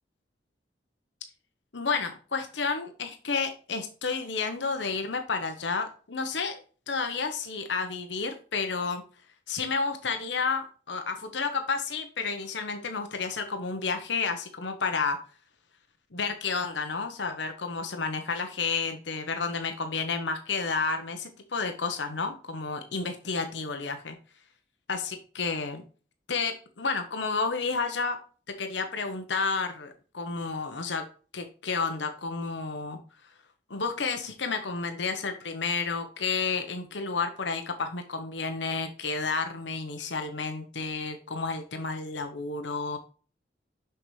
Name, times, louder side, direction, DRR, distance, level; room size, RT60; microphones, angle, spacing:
voice 1, 1.7-6.6 6.9-9.0 9.5-15.2 16.1-24.2 24.9-25.8 26.3-28.2 28.5-31.1 31.3-33.0 33.7-43.0, left 4 dB, 85° left, 6 dB, 1.0 m, -31 dB
6.4 x 5.9 x 3.2 m, 0.37 s
head